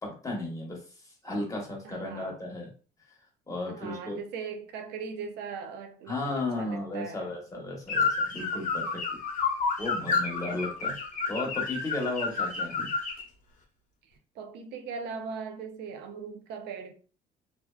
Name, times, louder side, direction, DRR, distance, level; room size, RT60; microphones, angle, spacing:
voice 1, 0.0-0.8 1.2-2.7 3.5-4.2 6.1-9.2 9.8-11.0 11.3-12.9, left 2 dB, 20° left, 0.9 m, -34 dB
voice 2, 1.8-2.4 3.7-7.3 14.4-16.9, right 5 dB, 80° right, 0.5 m, -39 dB
sound 1, 7.9-13.2, left 4 dB, 50° left, 0.7 m, -30 dB
2.5 x 2.2 x 2.3 m
cardioid pair, 110°, 17 cm